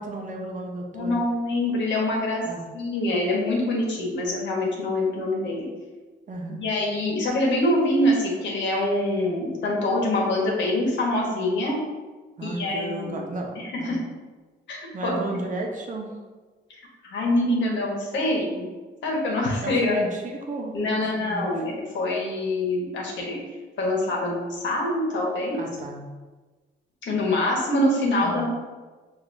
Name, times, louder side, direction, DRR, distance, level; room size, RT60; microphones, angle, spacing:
voice 1, 0.0-1.2 2.4-2.6 6.3-6.7 12.4-14.0 14.9-16.1 19.6-21.6 25.6-26.1 28.2-28.5, right 2 dB, 45° right, 0 dB, 0.8 m, -33 dB
voice 2, 0.9-2.4 2.7-5.7 6.5-11.8 12.4-13.2 13.6-14.0 14.7-15.2 17.0-18.7 19.0-20.0 20.7-23.4 23.8-25.6 27.0-28.5, left 1 dB, 75° left, -2 dB, 1.2 m, -25 dB
5.9 x 2.6 x 2.6 m, 1.3 s
cardioid pair, 105°, 19 cm